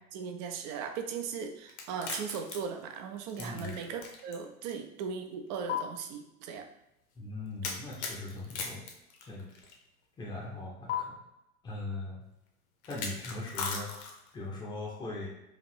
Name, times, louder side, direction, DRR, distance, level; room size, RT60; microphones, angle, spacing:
voice 1, 0.1-6.7 7.6-7.7, right 6 dB, 30° right, 6 dB, 0.5 m, -38 dB
sound 1, 1.7-4.4 4.7-4.8 5.7-5.8 7.6-9.7 10.9-11.0 12.8-14.3, left 6 dB, 50° left, 1.0 m, -38 dB
voice 2, 3.4-3.8 7.1-8.8 9.2-9.7 10.2-11.2 11.6-12.2 12.9-13.9 14.3-15.3, left 2 dB, 10° left, -4 dB, 0.7 m, -40 dB
4.9 x 2.5 x 3.3 m, 0.87 s
figure-of-eight pair, 95°, 44 cm